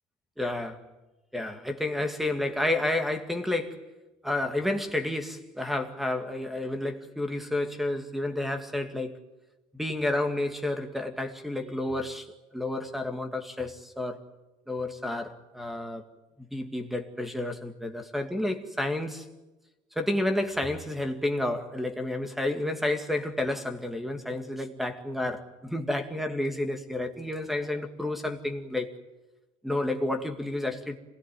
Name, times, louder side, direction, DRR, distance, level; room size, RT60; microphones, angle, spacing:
voice 1, 0.4-0.9 1.3-3.9 4.2-9.2 9.7-14.2 14.7-16.0 16.4-19.3 19.9-29.0 29.6-31.0, left 1 dB, ahead, 2.2 m, -30 dB
27.0 x 20.0 x 9.3 m
cardioid pair, 150°, 12 cm